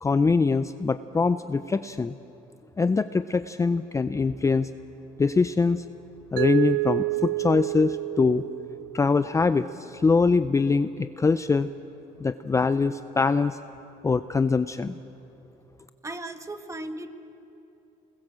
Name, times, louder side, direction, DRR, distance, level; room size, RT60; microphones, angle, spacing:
voice 1, 0.0-2.1 2.8-4.7 5.2-5.8 6.3-8.4 8.9-11.7 12.2-13.6 14.0-15.0, left 4 dB, 20° left, 11 dB, 0.5 m, -23 dB
Mallet percussion, 6.4-9.3, right 20 dB, 90° right, 0.5 m, -29 dB
voice 2, 16.0-17.1, right 2 dB, 20° right, 7 dB, 1.6 m, -36 dB
27.0 x 20.5 x 7.7 m, 2.9 s
cardioid pair, 110°, 17 cm